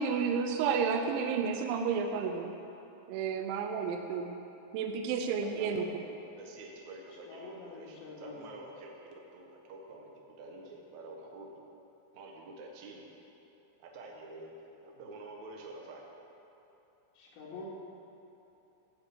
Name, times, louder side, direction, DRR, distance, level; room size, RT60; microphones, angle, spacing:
voice 1, 0.0-2.5 3.1-4.4 4.7-5.9, right 6 dB, 85° right, 4 dB, 3.1 m, -31 dB
voice 2, 5.4-5.9 6.4-7.9 8.2-10.1 10.4-11.5 12.1-13.1 13.9-14.5 14.8-16.0, right 2 dB, 65° right, -1 dB, 1.9 m, -47 dB
voice 3, 7.1-8.5 17.2-17.7, left 3 dB, 75° left, -4 dB, 4.3 m, -47 dB
15.0 x 5.7 x 8.1 m, 2.9 s
omnidirectional pair, 5.3 m